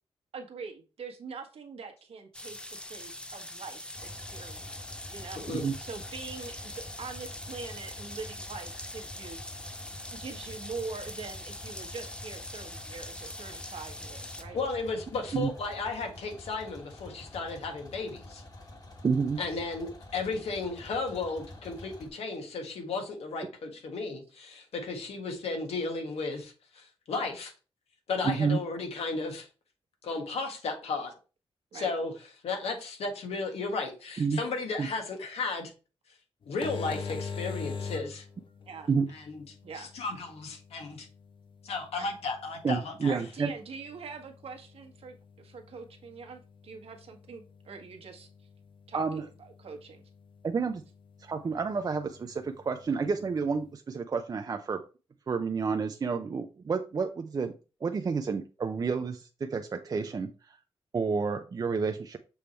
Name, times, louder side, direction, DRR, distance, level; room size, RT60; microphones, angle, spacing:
voice 1, 0.3-5.4 5.8-6.7 7.0-9.4 10.1-14.6 31.7-31.9 38.7-38.9 39.6-39.9 42.0-42.1 43.1-48.3 48.9-50.0, right 4 dB, 70° right, 3 dB, 1.4 m, -43 dB
sound 1, 2.3-14.4, left 1 dB, 10° left, 0.7 m, -43 dB
sound 2, 4.0-22.1, left 1 dB, 40° left, 1.8 m, -47 dB
voice 2, 5.3-5.7 14.5-18.4 19.4-27.5 28.1-29.5 30.0-31.1 31.7-32.1 32.4-35.7 36.5-38.3 39.1-39.4 39.8-41.1 41.6-43.2, left 3 dB, 85° left, 3 dB, 1.7 m, -34 dB
voice 3, 19.0-19.4 28.2-28.6 34.2-34.4 34.8-34.9 38.9-39.1 42.6-43.5 48.9-49.2 50.4-50.8 51.2-54.8 55.3-57.5 57.8-60.3 60.9-62.2, right 5 dB, 40° right, 6 dB, 0.5 m, -30 dB
sound 3, 36.4-53.7, left 5 dB, 55° left, 0.9 m, -45 dB
7.0 x 3.4 x 4.4 m, 0.33 s
cardioid pair, 100°, 10 cm